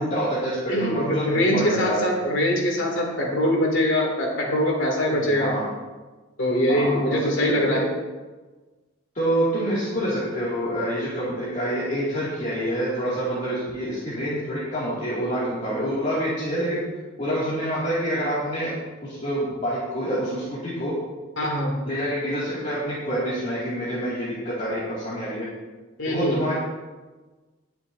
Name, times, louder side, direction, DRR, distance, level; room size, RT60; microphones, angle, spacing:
voice 1, 0.0-2.0 5.1-5.6 6.7-7.8 9.1-16.8 17.2-18.7 19.0-20.9 21.9-25.5 26.1-26.5, equal, 40° left, -9 dB, 2.6 m, -27 dB
voice 2, 0.7-5.5 6.4-7.8 21.4-21.8 26.0-26.4, equal, 75° left, -1 dB, 2.8 m, -23 dB
19.5 x 6.9 x 2.8 m, 1.3 s
head